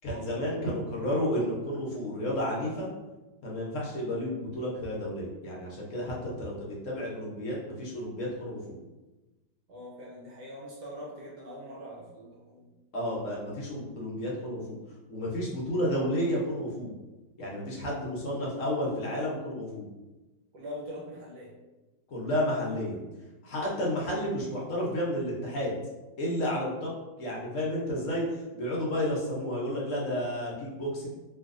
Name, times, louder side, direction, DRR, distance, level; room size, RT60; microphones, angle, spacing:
voice 1, 0.0-2.9 3.4-8.8 12.9-14.8 15.1-16.9 17.4-19.9 22.1-23.0 23.4-25.8 26.2-26.9 27.2-31.1, equal, 60° left, -4 dB, 0.9 m, -31 dB
voice 2, 9.7-12.7 20.5-21.5, equal, 70° right, -4 dB, 1.3 m, -42 dB
3.3 x 2.6 x 2.5 m, 1.1 s
omnidirectional pair, 1.9 m